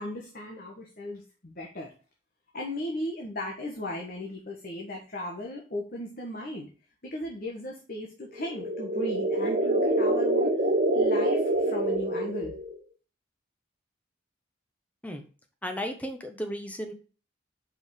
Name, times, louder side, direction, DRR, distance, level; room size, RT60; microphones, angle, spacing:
voice 1, 0.0-1.9 2.5-6.7 7.0-12.5, left 1 dB, 50° left, -1 dB, 1.4 m, -37 dB
sound 1, 8.4-12.8, right 1 dB, 50° right, 1.6 m, -26 dB
voice 2, 15.6-16.9, equal, 10° left, 5 dB, 1.1 m, -34 dB
5.5 x 5.2 x 4.8 m, 0.36 s
head